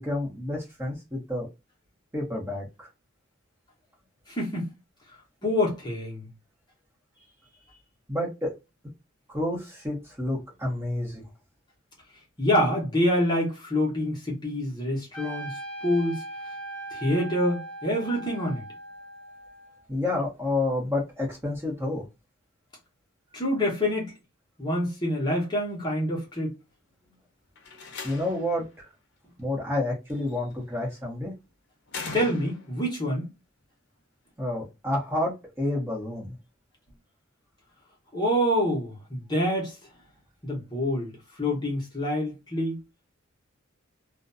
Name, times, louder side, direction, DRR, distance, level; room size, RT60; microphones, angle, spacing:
voice 1, 0.0-1.5 2.1-2.9 8.1-8.5 9.3-11.2 19.9-22.0 27.7-28.7 29.4-31.3 34.4-36.3, left 1 dB, 10° right, 0.9 m, -29 dB
voice 2, 4.3-4.7 5.4-6.3 12.4-15.5 15.8-16.2 16.9-18.6 23.3-24.1 24.6-26.5 32.1-33.3 38.1-39.8 40.4-42.8, left 1 dB, 20° left, 0.9 m, -26 dB
Trumpet, 15.1-19.8, right 2 dB, 5° left, 0.3 m, -39 dB
Slam, 27.6-28.6 30.1-30.5 31.9-32.9, left 4 dB, 55° left, 0.7 m, -39 dB
2.5 x 2.2 x 2.5 m
head